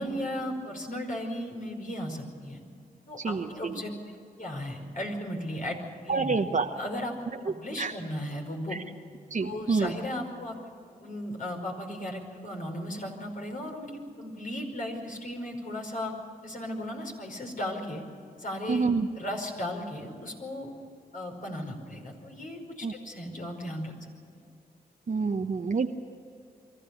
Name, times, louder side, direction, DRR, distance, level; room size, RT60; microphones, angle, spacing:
voice 1, 0.0-2.6 3.1-6.4 6.7-7.1 7.4-8.8 9.4-10.6 11.0-16.1 16.4-18.0 18.4-18.9 19.2-20.7 21.1-23.9, left 1 dB, 55° left, 1 dB, 5.1 m, -36 dB
voice 2, 3.2-3.8 6.1-6.7 7.8-7.9 9.3-9.9 18.7-19.1 22.8-22.9 25.1-25.9, right 4 dB, 50° right, 3 dB, 1.0 m, -27 dB
24.0 x 14.0 x 8.4 m, 2.5 s
cardioid pair, 45°, 16 cm